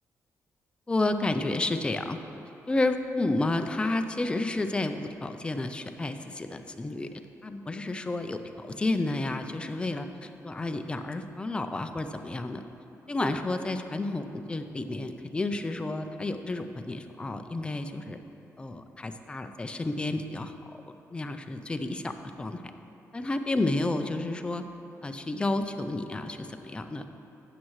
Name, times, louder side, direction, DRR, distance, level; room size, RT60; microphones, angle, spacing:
voice 1, 0.9-2.2 2.7-7.1 7.4-12.6 13.1-18.2 18.6-20.5 21.1-22.6 23.1-24.6 25.0-27.1, left 2 dB, 20° left, 7 dB, 0.4 m, -31 dB
12.5 x 8.3 x 3.1 m, 2.9 s
wide cardioid pair, 145°, 6 cm